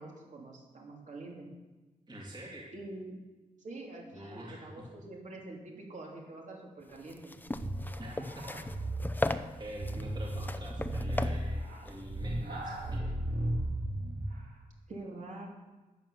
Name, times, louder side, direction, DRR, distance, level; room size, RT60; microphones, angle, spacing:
voice 1, 0.0-1.5 2.7-3.2 3.6-7.3 14.9-15.5, right 2 dB, 60° right, -1 dB, 3.2 m, -45 dB
voice 2, 2.1-2.7 4.2-4.7 8.0-8.6 9.5-13.2, right 1 dB, 30° right, -3 dB, 2.4 m, -46 dB
sound 1, 6.9-12.9, left 2 dB, 15° left, 0.6 m, -38 dB
sound 2, 7.5-14.4, right 1 dB, 90° right, 3.1 m, -35 dB
12.5 x 9.8 x 7.0 m, 1.2 s
wide cardioid pair, 145°, 14 cm